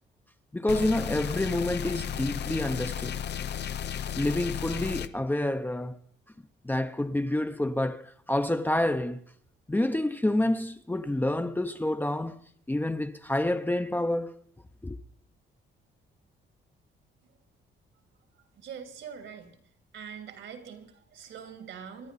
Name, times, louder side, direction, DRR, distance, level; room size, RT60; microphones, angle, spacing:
voice 1, 0.5-3.2 4.2-6.0 6.6-9.2 9.7-12.4 12.7-14.4 14.8-15.0, left 1 dB, 10° left, 0.7 m, -28 dB
sound 1, 0.7-5.1, left 9 dB, 60° left, 0.7 m, -34 dB
voice 2, 18.5-19.6 19.9-22.1, right 7 dB, 75° right, 2.9 m, -43 dB
26.0 x 10.5 x 4.1 m
cardioid pair, 90°, 20 cm